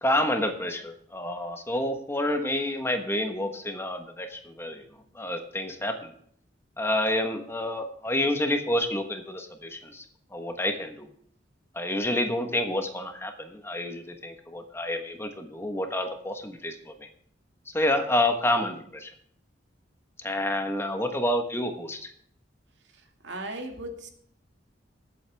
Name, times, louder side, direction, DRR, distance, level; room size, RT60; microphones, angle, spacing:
voice 1, 0.0-4.8 5.1-6.1 6.8-10.0 10.3-11.1 11.7-17.1 17.7-19.1 20.2-22.1, left 1 dB, 15° left, 5 dB, 1.3 m, -29 dB
voice 2, 22.9-24.1, right 1 dB, 75° right, 4 dB, 2.2 m, -38 dB
20.5 x 8.5 x 3.5 m, 0.62 s
head